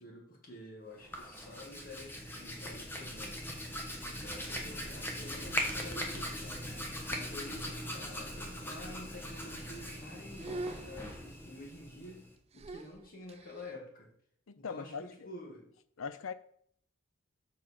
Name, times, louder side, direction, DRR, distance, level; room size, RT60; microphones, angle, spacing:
voice 1, 0.0-3.5 4.1-6.7 7.1-12.3 12.5-14.1 14.6-15.7, left 1 dB, 45° left, 0 dB, 2.0 m, -49 dB
Hands, 0.9-12.3, equal, 10° left, 1.0 m, -40 dB
sound 1, 8.7-9.3 9.6-10.1 10.4-11.6 12.5-13.7, right 2 dB, 30° right, 0.4 m, -45 dB
voice 2, 14.5-15.3 16.0-16.3, left 5 dB, 80° left, 14 dB, 0.6 m, -40 dB
7.5 x 6.1 x 4.4 m, 0.64 s
head